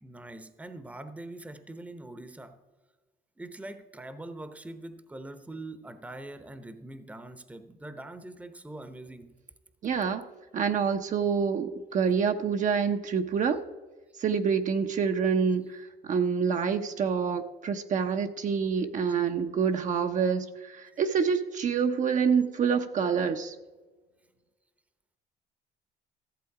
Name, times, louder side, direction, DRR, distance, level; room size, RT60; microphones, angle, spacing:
voice 1, 0.0-2.6 3.4-9.3 21.0-21.2, right 2 dB, 10° right, 10 dB, 0.9 m, -43 dB
voice 2, 9.8-10.3 10.5-13.6 14.2-23.5, right 6 dB, 50° right, 6 dB, 0.8 m, -27 dB
14.5 x 7.7 x 4.8 m, 1.3 s
cardioid pair, 110°, 17 cm